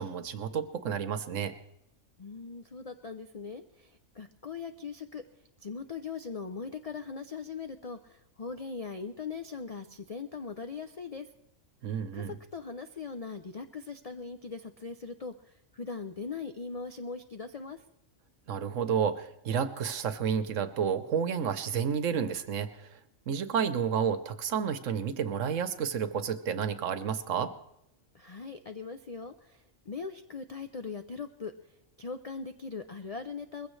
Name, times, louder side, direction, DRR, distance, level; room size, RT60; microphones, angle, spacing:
voice 1, 0.0-1.5 11.8-12.4 18.5-23.0 23.3-27.5, right 7 dB, 70° right, 11 dB, 1.2 m, -31 dB
voice 2, 2.2-5.2 5.6-11.3 12.1-17.8 28.1-31.5 32.0-33.7, left 5 dB, 60° left, 8 dB, 0.3 m, -40 dB
21.0 x 15.5 x 3.2 m, 0.80 s
omnidirectional pair, 1.4 m